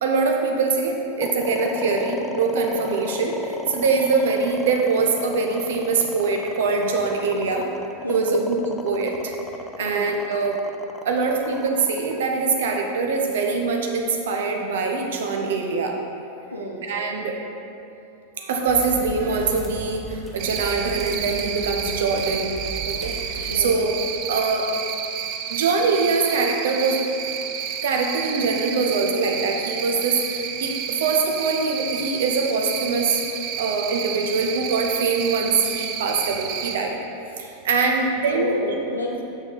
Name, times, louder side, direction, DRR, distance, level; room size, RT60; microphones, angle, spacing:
voice 1, 0.0-7.7 8.1-9.3 9.8-10.6 11.0-16.0 16.8-17.4 18.4-22.5 22.9-24.7 25.5-27.0 27.8-33.2 33.6-37.0 37.4-38.5, right 4 dB, 60° right, 2 dB, 0.8 m, -23 dB
sound 1, 1.2-13.5, left 3 dB, 15° left, 0.4 m, -34 dB
voice 2, 8.0-8.4 9.8-10.1 16.5-16.8 23.5-23.8 37.4-37.6 38.3-39.2, left 1 dB, 85° left, -3 dB, 0.8 m, -29 dB
sound 2, 18.7-23.7, right 2 dB, 5° right, 1.3 m, -36 dB
Cricket, 20.4-36.8, right 8 dB, 45° right, 0.5 m, -31 dB
7.2 x 6.2 x 3.8 m, 2.7 s
figure-of-eight pair, 90°, 0 cm